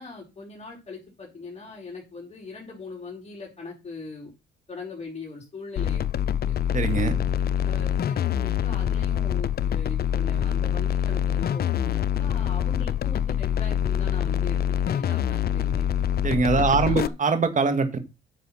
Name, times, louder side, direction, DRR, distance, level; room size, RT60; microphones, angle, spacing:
voice 1, 0.0-4.3 4.7-6.0 6.5-6.6 7.6-15.9 16.5-17.1, left 4 dB, 30° left, -3 dB, 4.7 m, -40 dB
sound 1, 5.8-17.1, left 10 dB, 50° left, 0.6 m, -25 dB
voice 2, 6.7-7.2 16.2-18.0, right 4 dB, 40° right, 8 dB, 2.4 m, -22 dB
9.9 x 6.1 x 6.0 m, 0.26 s
cardioid pair, 90°, 20 cm